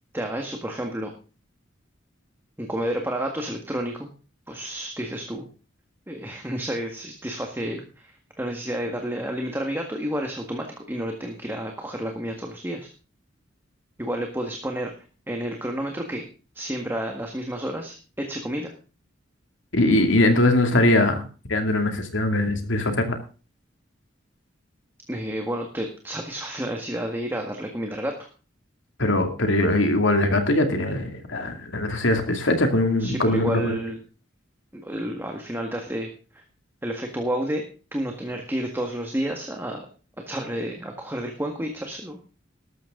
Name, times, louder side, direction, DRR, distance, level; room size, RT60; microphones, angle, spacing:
voice 1, 0.1-1.1 2.6-4.1 4.5-5.5 6.1-12.9 14.0-14.9 15.3-16.2 16.5-18.7 25.1-28.3 33.0-34.0 34.7-36.4 36.8-37.6 37.9-39.8 40.3-42.2, right 1 dB, 10° right, 3 dB, 1.7 m, -30 dB
voice 2, 19.7-21.2 21.5-23.2 29.0-33.7, left 1 dB, 70° left, 6 dB, 2.6 m, -21 dB
13.5 x 12.5 x 3.8 m, 0.35 s
head